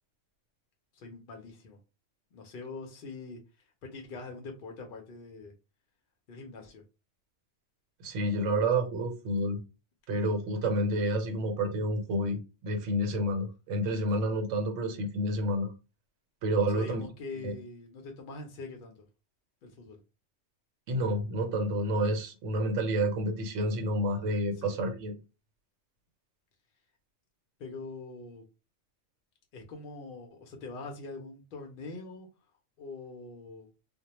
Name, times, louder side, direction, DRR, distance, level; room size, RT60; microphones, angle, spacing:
voice 1, 0.9-1.8 2.3-5.5 6.3-6.8 16.7-19.0 19.6-20.0 24.6-24.8 27.6-28.4 29.5-32.3 32.8-33.7, left 3 dB, 60° left, 0.6 m, -43 dB
voice 2, 8.0-9.6 10.1-15.7 16.4-17.1 17.4-17.6 20.9-25.1, right 1 dB, 80° right, 1.0 m, -29 dB
2.1 x 2.1 x 2.9 m
omnidirectional pair, 1.3 m